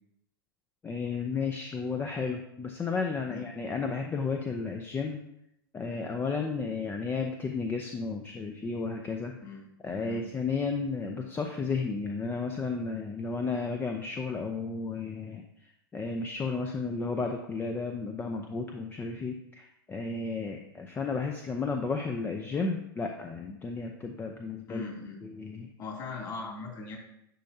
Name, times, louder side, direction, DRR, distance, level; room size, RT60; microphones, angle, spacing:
voice 1, 0.8-5.2 5.7-9.4 9.8-15.4 15.9-24.8 25.2-25.7, left 4 dB, 15° left, 4 dB, 0.6 m, -33 dB
voice 2, 24.7-25.2 25.8-27.0, left 4 dB, 30° left, -1 dB, 2.7 m, -39 dB
10.0 x 5.3 x 2.8 m, 0.81 s
figure-of-eight pair, 100°, 13 cm